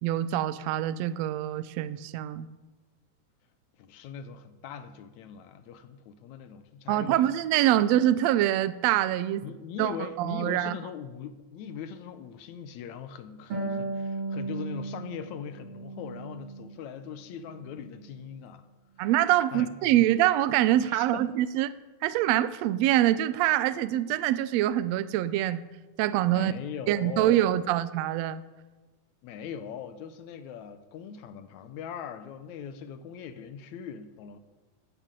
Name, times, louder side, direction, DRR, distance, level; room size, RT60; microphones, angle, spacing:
voice 1, 0.0-2.5 6.9-9.5 9.8-9.9 10.2-10.8 19.0-21.7 22.0-25.6 26.0-26.5 26.9-28.4, right 13 dB, 80° right, 14 dB, 1.6 m, -25 dB
voice 2, 3.8-7.4 9.4-18.7 19.0-19.1 19.5-20.1 20.8-21.3 26.3-27.6 29.2-34.4, left 7 dB, 75° left, 10 dB, 2.0 m, -41 dB
Harp, 13.5-16.9 17.2-18.3, right 3 dB, 45° right, 4.2 m, -36 dB
13.0 x 8.3 x 8.8 m, 1.2 s
omnidirectional pair, 3.6 m